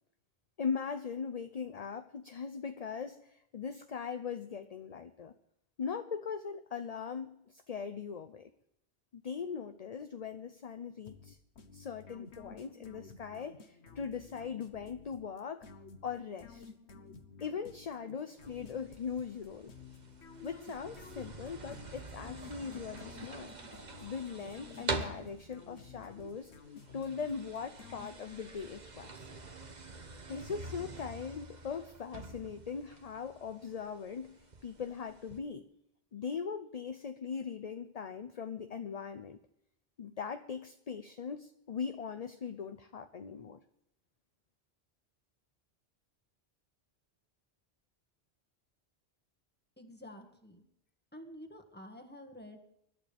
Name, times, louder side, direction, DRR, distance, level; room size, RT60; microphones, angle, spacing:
voice 1, 0.6-5.3 5.8-8.5 9.1-11.4 11.7-15.7 16.0-16.7 17.4-19.7 20.4-23.5 24.0-26.5 26.9-29.3 30.3-35.7 36.1-39.4 40.0-43.6, left 6 dB, 40° left, 8 dB, 0.7 m, -40 dB
sound 1, 11.1-28.5, left 5 dB, 85° left, 1.5 m, -53 dB
sound 2, 18.4-35.4, right 3 dB, 45° right, 1.3 m, -46 dB
voice 2, 49.8-50.6 51.1-52.6, left 1 dB, 10° left, 3 dB, 1.8 m, -50 dB
25.0 x 12.0 x 3.5 m, 0.79 s
omnidirectional pair, 1.1 m